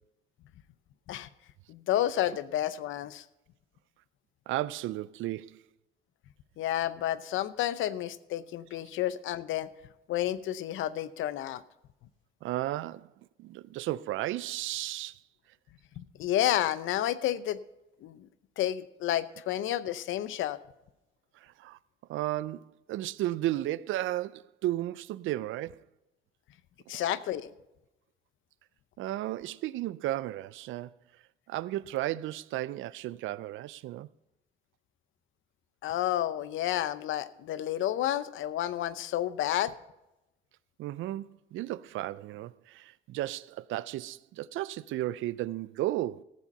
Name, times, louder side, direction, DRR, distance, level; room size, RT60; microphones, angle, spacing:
voice 1, 1.7-3.2 6.6-9.7 10.1-11.6 16.0-17.6 18.0-18.3 18.6-20.6 26.9-27.5 35.8-39.7, left 12 dB, 80° left, 0.7 m, -30 dB
voice 2, 4.5-5.6 12.4-13.1 13.4-15.2 21.4-21.8 22.1-25.8 29.0-30.9 31.5-34.1 40.8-46.2, right 15 dB, 80° right, 0.4 m, -34 dB
14.0 x 7.4 x 5.3 m
cardioid pair, 90°, 20 cm